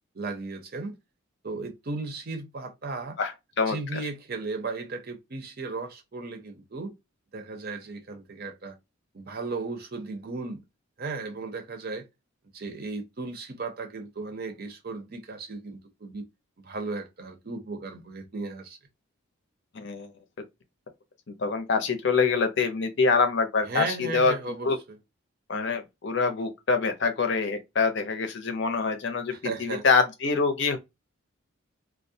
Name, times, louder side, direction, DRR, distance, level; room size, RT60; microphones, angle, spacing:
voice 1, 0.1-1.0 1.4-3.2 3.7-6.9 7.3-8.8 9.1-10.6 11.0-12.1 12.5-16.2 16.6-18.8 23.6-25.0 29.3-29.8, right 3 dB, 45° right, 0.6 m, -35 dB
voice 2, 3.6-4.0 19.7-20.1 21.3-24.3 24.6-24.8 25.5-29.3 29.6-30.8, left 4 dB, 55° left, 0.6 m, -25 dB
2.3 x 2.1 x 2.6 m
head